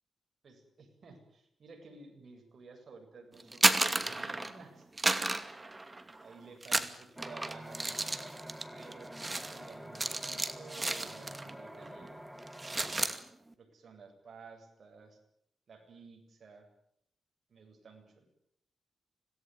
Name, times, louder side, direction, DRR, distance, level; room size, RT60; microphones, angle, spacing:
voice 1, 0.4-4.9 5.6-5.8 6.2-8.4 8.7-12.3 13.6-15.2 15.7-16.7 17.5-18.2, right 4 dB, 55° right, 4 dB, 7.9 m, -54 dB
sound 1, 3.4-4.6 5.0-6.2 6.6-11.5 11.8-12.1 12.4-13.2, right 2 dB, 20° right, 2.4 m, -32 dB
sound 2, 7.2-13.1, right 1 dB, 5° right, 2.5 m, -47 dB
26.5 x 18.5 x 9.5 m, 0.73 s
cardioid pair, 95°, 0 cm